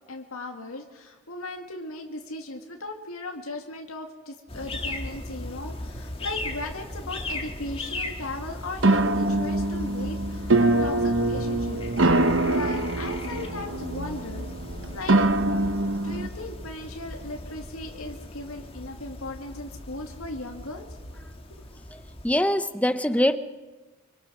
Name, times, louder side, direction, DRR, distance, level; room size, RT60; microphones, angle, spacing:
voice 1, 0.1-14.5 14.9-15.2 16.0-20.9, left 2 dB, 85° left, 3 dB, 2.2 m, -37 dB
sound 1, 4.5-22.3, left 1 dB, 25° left, 1.6 m, -37 dB
sound 2, 8.8-16.3, right 2 dB, 60° right, 1.1 m, -24 dB
voice 2, 22.2-23.4, left 1 dB, 5° left, 11 dB, 0.7 m, -23 dB
26.0 x 24.5 x 6.4 m, 1.2 s
head